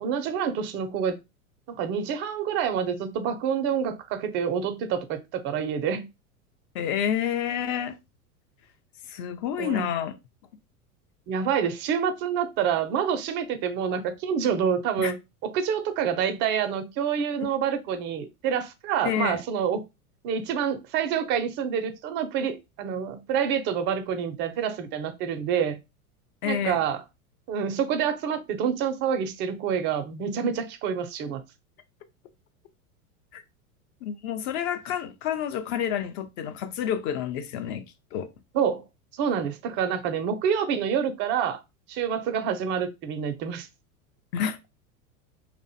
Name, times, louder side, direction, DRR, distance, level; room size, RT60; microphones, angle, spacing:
voice 1, 0.0-1.2 1.7-6.1 9.6-9.9 11.3-15.2 15.4-19.8 20.2-25.8 26.4-27.0 27.5-31.4 38.5-38.8 39.2-41.6 41.9-43.7, right 7 dB, 30° right, 0.3 m, -27 dB
voice 2, 6.7-8.0 9.1-10.1 15.0-15.1 19.0-19.4 26.4-26.8 33.3-33.4 34.0-37.8 38.1-38.3 44.3-44.6, left 9 dB, 50° left, 0.6 m, -29 dB
2.5 x 2.1 x 2.6 m
hypercardioid pair, 100°, 44 cm